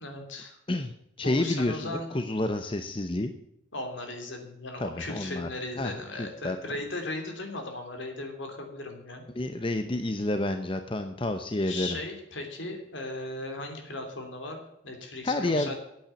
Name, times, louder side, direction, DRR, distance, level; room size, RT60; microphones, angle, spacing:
voice 1, 0.0-0.6 1.2-2.1 3.7-9.2 11.6-15.8, left 2 dB, 70° left, 4 dB, 3.0 m, -37 dB
voice 2, 0.7-3.3 4.8-5.5 5.8-6.6 9.3-12.0 15.2-15.7, left 2 dB, 25° left, 8 dB, 0.7 m, -29 dB
8.9 x 8.7 x 8.2 m, 0.80 s
head